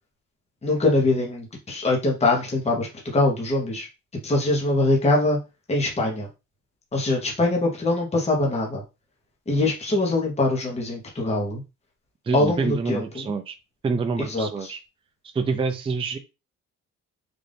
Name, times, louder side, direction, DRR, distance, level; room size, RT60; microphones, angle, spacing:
voice 1, 0.6-3.9 4.2-5.4 5.7-6.3 6.9-8.8 9.5-11.6 12.3-13.3 14.2-14.7, left 2 dB, 20° left, -1 dB, 1.1 m, -23 dB
voice 2, 12.3-13.5 13.8-14.8 15.3-16.2, right 4 dB, 20° right, 7 dB, 0.4 m, -26 dB
3.9 x 2.6 x 3.4 m, 0.27 s
cardioid pair, 135°, 31 cm